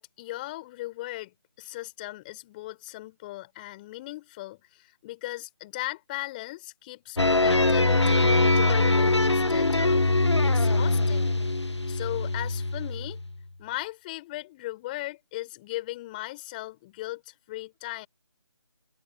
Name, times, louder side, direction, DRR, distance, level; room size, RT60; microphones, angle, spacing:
voice 1, 0.0-11.4 11.9-13.2 13.6-18.1, left 18 dB, 20° left, 4.7 m, -38 dB
sound 1, 7.2-13.4, left 2 dB, 85° left, 1.3 m, -23 dB
open air
figure-of-eight pair, 155°, 14 cm